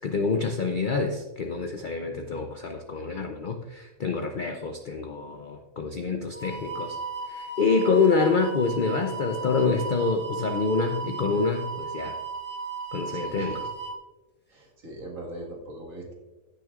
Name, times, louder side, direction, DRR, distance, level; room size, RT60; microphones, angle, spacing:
voice 1, 0.0-7.0 7.3-12.2 12.9-13.7, left 4 dB, 60° left, 5 dB, 0.5 m, -26 dB
sound 1, 6.3-13.9, right 4 dB, 10° left, 1.0 m, -36 dB
voice 2, 13.1-13.6 14.5-16.1, right 1 dB, 60° right, -1 dB, 2.1 m, -40 dB
15.5 x 6.1 x 2.4 m, 1.1 s
omnidirectional pair, 1.6 m